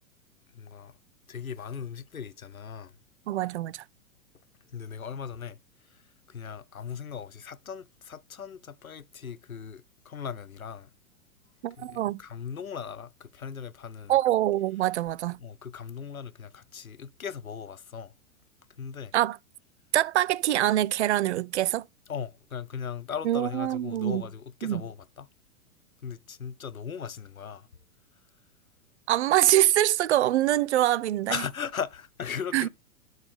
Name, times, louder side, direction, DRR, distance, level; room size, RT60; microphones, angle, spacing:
voice 1, 0.5-0.9 1.3-3.0 4.7-5.6 5.9-6.0 6.3-10.9 11.8-14.1 15.4-18.1 18.8-19.1 22.1-25.3 26.0-27.7 31.3-32.7, left 7 dB, 85° left, 0.7 m, -38 dB
voice 2, 3.3-3.8 11.6-12.2 14.1-15.4 19.1-19.4 19.9-21.8 23.2-24.2 24.6-24.8 29.1-31.3 32.5-32.7, right 13 dB, 55° right, 0.5 m, -24 dB
10.5 x 4.0 x 4.9 m
figure-of-eight pair, 100°, 41 cm